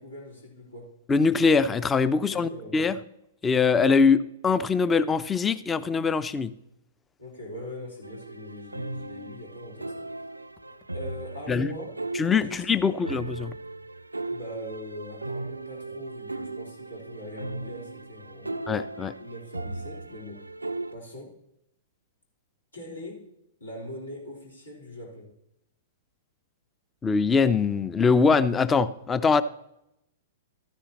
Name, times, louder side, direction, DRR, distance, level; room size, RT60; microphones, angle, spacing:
voice 1, 0.0-1.0 2.2-2.8 7.2-10.1 10.9-11.9 12.4-13.1 14.3-18.6 19.2-20.5 20.9-21.4 22.7-23.3 23.6-25.3, equal, 80° left, -4 dB, 3.9 m, -41 dB
voice 2, 1.1-3.0 3.4-6.5 11.5-11.7 12.2-13.5 18.7-19.1 27.0-29.4, left 5 dB, 15° left, 16 dB, 0.5 m, -22 dB
sound 1, 8.0-20.9, right 2 dB, 85° right, 0.4 m, -37 dB
13.0 x 9.9 x 3.0 m, 0.81 s
figure-of-eight pair, 105°, 0 cm